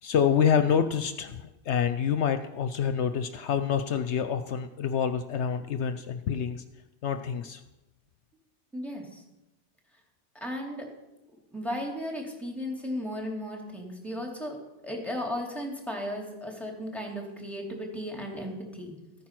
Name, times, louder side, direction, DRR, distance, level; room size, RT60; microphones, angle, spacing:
voice 1, 0.0-6.6 7.0-7.6, left 7 dB, 70° left, 9 dB, 0.9 m, -27 dB
voice 2, 8.7-9.2 10.3-10.9 11.5-14.6 14.8-19.0, equal, ahead, 1 dB, 2.7 m, -35 dB
14.5 x 9.3 x 5.9 m, 0.99 s
omnidirectional pair, 1.2 m